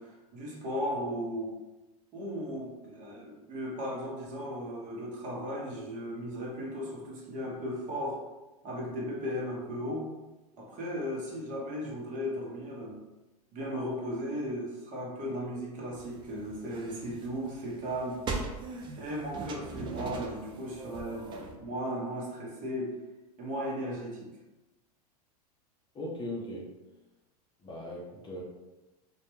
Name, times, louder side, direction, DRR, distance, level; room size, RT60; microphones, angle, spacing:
voice 1, 0.0-1.6 2.1-8.2 8.6-10.1 10.6-13.0 13.5-18.2 19.0-22.9 23.4-24.3, equal, 40° right, -2 dB, 0.8 m, -36 dB
sound 1, 16.0-21.5, right 3 dB, 25° right, 0.4 m, -40 dB
voice 2, 25.9-26.7 27.6-28.4, left 1 dB, 25° left, -3 dB, 0.6 m, -38 dB
2.2 x 2.1 x 3.0 m, 1.1 s
hypercardioid pair, 110°, 20 cm